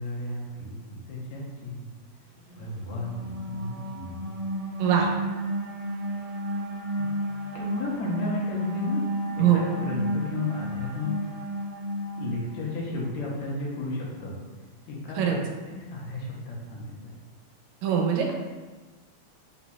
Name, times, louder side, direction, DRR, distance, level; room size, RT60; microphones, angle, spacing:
voice 1, 0.0-1.9 2.6-4.3 6.0-6.3 7.0-7.1 7.5-9.0 9.4-11.1 12.2-14.4 14.8-15.4 15.7-17.2, left 2 dB, 80° left, -3 dB, 2.1 m, -33 dB
sound 1, 2.4-12.9, equal, 55° right, 1.7 m, -32 dB
voice 2, 17.8-18.3, right 9 dB, 85° right, 1 dB, 1.9 m, -22 dB
5.0 x 4.1 x 2.3 m, 1.3 s
omnidirectional pair, 3.3 m